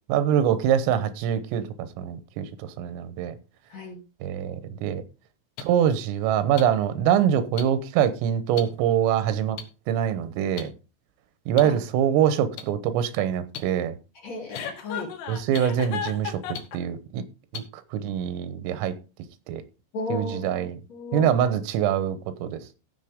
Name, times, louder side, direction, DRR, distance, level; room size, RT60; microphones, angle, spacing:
voice 1, 0.1-2.5 2.8-3.4 4.2-5.0 5.6-9.6 9.9-10.7 11.5-14.0 15.3-16.4 16.7-17.2 17.5-17.6 17.9-18.9 19.5-19.6 20.1-20.8 21.1-22.6, right 9 dB, 90° right, 3.6 m, -24 dB
sound 1, 5.6-5.7 6.6-6.7 7.6-7.7 8.6-8.7 9.6-9.7 10.6-10.7 11.6-11.7 12.6-12.7 13.5-13.6 14.5-14.6 15.5-15.6 16.5-16.6 17.5-17.6 18.5-18.6, left 8 dB, 70° left, 2.4 m, -35 dB
voice 2, 14.2-15.1 19.9-21.3, left 2 dB, 40° left, 3.0 m, -34 dB
Chuckle chortle, 14.5-16.8, left 8 dB, 85° left, 4.2 m, -34 dB
15.5 x 6.3 x 3.6 m
omnidirectional pair, 5.7 m